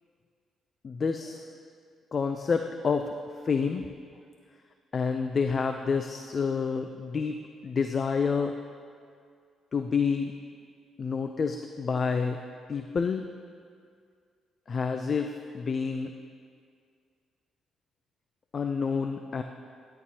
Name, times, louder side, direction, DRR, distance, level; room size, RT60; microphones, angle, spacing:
voice 1, 0.8-1.4 2.1-3.1 3.4-3.9 4.9-7.4 7.6-8.6 9.7-10.3 11.0-12.4 12.7-13.2 14.7-16.1 18.5-19.4, left 5 dB, 40° left, 6 dB, 0.4 m, -28 dB
11.0 x 10.5 x 2.8 m, 2.2 s
cardioid pair, 90°, 0 cm